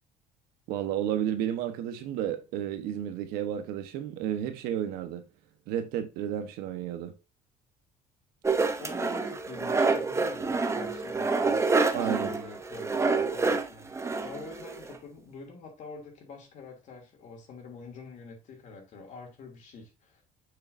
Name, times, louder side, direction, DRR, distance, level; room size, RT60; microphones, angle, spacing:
voice 1, 0.7-5.2 5.7-7.1 11.9-12.3, right 10 dB, 90° right, 1.2 m, -32 dB
sound 1, 8.4-14.9, right 4 dB, 20° right, 0.8 m, -27 dB
voice 2, 8.8-11.6 12.0-20.2, left 4 dB, 55° left, 2.9 m, -46 dB
6.6 x 6.6 x 2.7 m
cardioid pair, 115°, 15 cm